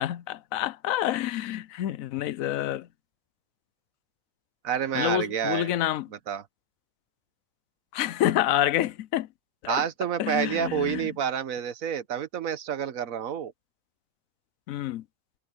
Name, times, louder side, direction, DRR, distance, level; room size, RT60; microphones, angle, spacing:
voice 1, 0.0-2.9 4.9-6.1 7.9-9.3 9.6-9.8 10.2-11.1 14.7-15.0, left 12 dB, 80° left, 1.0 m, -28 dB
voice 2, 4.6-5.7 6.3-6.4 9.7-13.5, right 8 dB, 85° right, 1.4 m, -29 dB
omnidirectional pair, 1.4 m